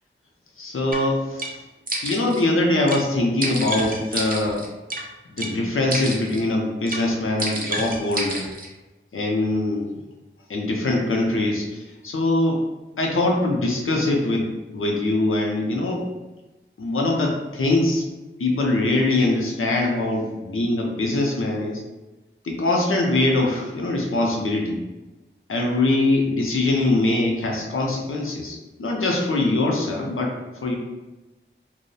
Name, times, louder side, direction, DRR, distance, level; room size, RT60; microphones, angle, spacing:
voice 1, 0.6-1.5 2.0-4.6 5.4-8.4 9.1-9.9 10.5-12.6 13.0-16.1 16.8-18.1 18.4-21.8 22.4-24.8 25.5-30.8, left 2 dB, 85° left, 0 dB, 0.5 m, -22 dB
sound 1, 0.9-1.0 1.4-1.5 1.9-2.4 2.9-3.0 3.4-5.0 5.4-5.5 5.9-6.4 6.9-7.0 7.4-8.7, right 1 dB, 45° right, 0.4 m, -29 dB
2.5 x 2.0 x 2.6 m, 1.1 s
wide cardioid pair, 50°, 21 cm